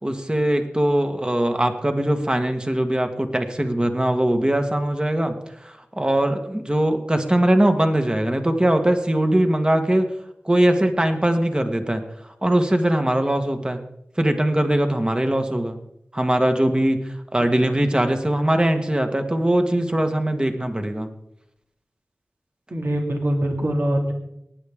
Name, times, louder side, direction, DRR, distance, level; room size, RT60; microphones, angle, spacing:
voice 1, 0.0-5.3 5.6-10.1 10.4-12.0 12.4-13.8 14.2-15.8 16.1-17.0 17.3-21.1, right 1 dB, 20° right, 6 dB, 1.4 m, -21 dB
voice 2, 22.7-24.1, right 1 dB, 65° right, 1 dB, 2.2 m, -23 dB
18.5 x 9.8 x 3.6 m, 0.80 s
wide cardioid pair, 65°, 4 cm